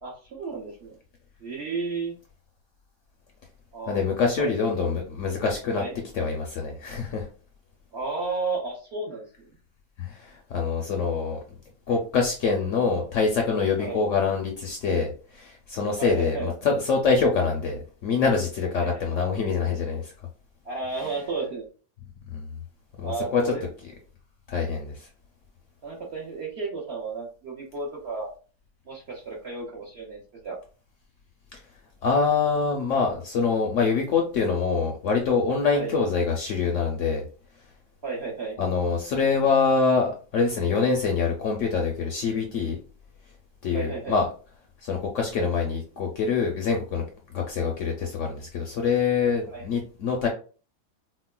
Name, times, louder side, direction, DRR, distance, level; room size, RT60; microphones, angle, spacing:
voice 1, 0.0-1.0 1.4-2.1 3.7-4.5 5.7-5.9 7.9-9.2 13.8-14.0 16.0-16.5 18.8-19.0 20.6-21.7 23.0-23.6 25.8-28.3 28.9-30.6 35.7-35.9 38.0-38.6 43.7-44.2 49.5-49.7, right 4 dB, 60° right, -2 dB, 0.7 m, -33 dB
voice 2, 3.9-5.8 6.1-7.3 10.0-11.4 11.9-20.1 22.3-22.5 23.0-23.5 24.5-25.1 32.0-37.2 38.6-42.8 43.6-44.3 44.8-47.0 47.3-50.3, left 5 dB, 70° left, 2 dB, 0.7 m, -25 dB
4.3 x 2.0 x 2.2 m, 0.37 s
omnidirectional pair, 1.7 m